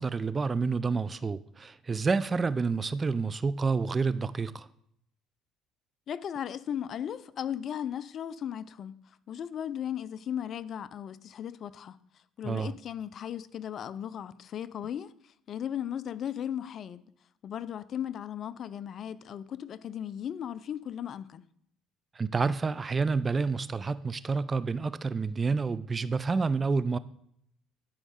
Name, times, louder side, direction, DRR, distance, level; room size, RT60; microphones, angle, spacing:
voice 1, 0.0-4.7 12.4-12.7 22.2-27.0, right 4 dB, 30° right, 0.4 m, -29 dB
voice 2, 6.1-8.9 9.3-12.0 12.4-15.1 15.5-17.0 17.4-21.4, left 9 dB, 50° left, 0.4 m, -36 dB
11.5 x 5.2 x 3.7 m
supercardioid pair, 80°, 0 cm